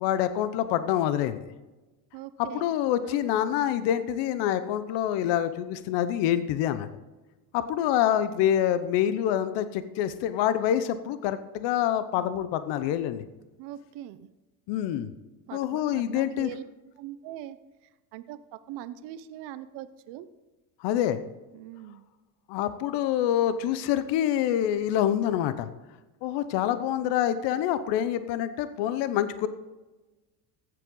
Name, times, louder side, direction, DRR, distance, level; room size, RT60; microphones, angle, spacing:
voice 1, 0.0-1.5 2.5-6.9 7.5-13.2 14.7-15.1 15.5-16.5 20.8-21.2 22.5-25.7 26.2-29.5, left 11 dB, 60° left, 12 dB, 0.9 m, -26 dB
voice 2, 2.1-2.7 3.0-3.2 13.6-14.3 15.5-16.6 17.0-17.6 18.1-20.3 21.5-22.0, right 12 dB, 60° right, 13 dB, 0.8 m, -41 dB
14.5 x 7.7 x 3.9 m, 1.1 s
supercardioid pair, 115°, 47 cm